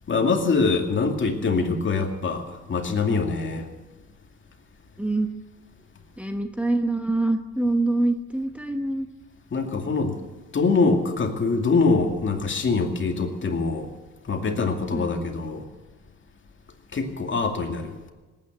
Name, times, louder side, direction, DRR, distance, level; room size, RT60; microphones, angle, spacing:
voice 1, 0.1-3.6 9.5-10.2 10.5-13.9 14.3-15.6 16.9-17.9, left 4 dB, 40° left, 3 dB, 2.4 m, -24 dB
voice 2, 5.0-5.3 6.2-9.1 14.9-15.2, right 2 dB, 5° right, 4 dB, 1.1 m, -25 dB
18.5 x 9.5 x 8.2 m, 1.2 s
cardioid pair, 90°, 30 cm